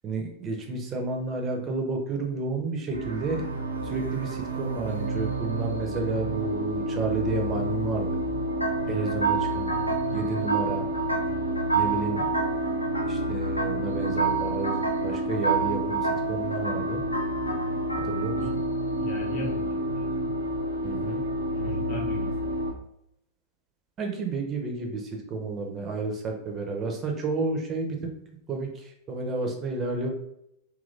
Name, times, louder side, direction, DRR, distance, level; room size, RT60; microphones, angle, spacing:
voice 1, 0.0-3.4 3.8-8.1 8.9-9.7 10.1-10.9 11.7-12.3 13.1-17.0 18.0-18.4 20.8-21.2 24.0-28.0 28.5-30.1, right 3 dB, 25° right, 2 dB, 0.6 m, -31 dB
sound 1, 2.9-22.7, equal, 70° right, 0.4 m, -30 dB
sound 2, 8.6-18.5, right 5 dB, 85° left, 0.3 m, -30 dB
voice 2, 19.0-20.3 21.6-22.5, right 1 dB, 45° left, -3 dB, 0.8 m, -38 dB
2.9 x 2.6 x 2.5 m, 0.77 s
figure-of-eight pair, 90°, 0 cm